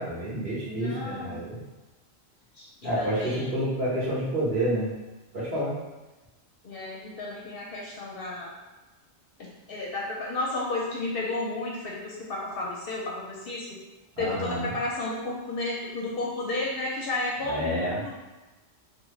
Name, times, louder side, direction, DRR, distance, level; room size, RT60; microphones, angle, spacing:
voice 1, 0.0-1.6 2.8-4.9 5.3-5.7 14.1-14.7 17.4-18.0, right 1 dB, 55° right, -9 dB, 1.4 m, -29 dB
voice 2, 0.6-1.4 2.5-3.6 6.6-8.5 9.4-13.6 14.2-18.1, left 2 dB, 60° left, -4 dB, 0.7 m, -32 dB
3.3 x 2.1 x 3.0 m, 1.1 s
omnidirectional pair, 1.2 m